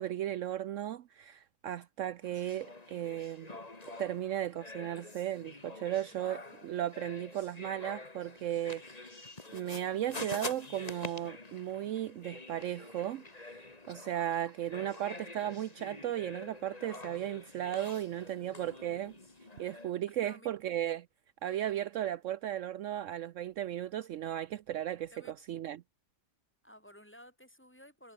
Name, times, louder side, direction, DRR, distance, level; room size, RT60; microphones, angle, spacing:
voice 1, 0.0-3.5 4.0-9.2 9.5-19.2 19.6-21.1 21.4-25.8, right 11 dB, 70° right, 0.9 m, -36 dB
sound 1, 2.2-19.9, left 2 dB, 25° left, 2.3 m, -47 dB
voice 2, 18.0-18.5 20.2-20.5 25.1-25.3 26.6-28.1, equal, 10° left, 5.2 m, -56 dB
omnidirectional pair, 1.5 m